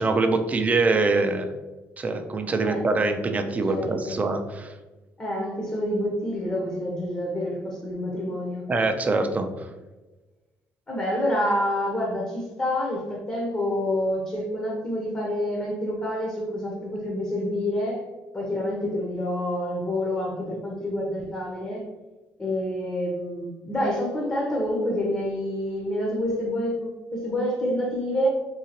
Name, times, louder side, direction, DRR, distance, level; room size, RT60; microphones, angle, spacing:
voice 1, 0.0-1.5 2.0-4.7 8.7-9.5, right 3 dB, 25° right, 6 dB, 0.4 m, -24 dB
voice 2, 3.7-4.2 5.2-8.7 10.9-18.0 18.3-21.8 22.4-28.3, left 1 dB, 25° left, -3 dB, 0.8 m, -27 dB
3.8 x 2.4 x 2.8 m, 1.2 s
cardioid pair, 105°, 6 cm